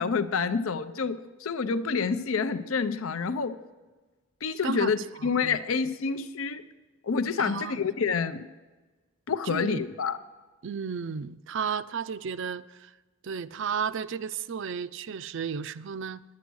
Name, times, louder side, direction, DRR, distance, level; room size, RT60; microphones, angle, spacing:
voice 1, 0.0-3.5 4.4-6.6 7.0-8.4 9.3-10.2, left 5 dB, 70° left, 11 dB, 0.5 m, -28 dB
voice 2, 5.2-5.6 7.4-8.0 9.5-9.8 10.6-12.9 13.2-16.2, right 6 dB, 60° right, 16 dB, 0.4 m, -33 dB
10.5 x 9.5 x 6.2 m, 1.2 s
head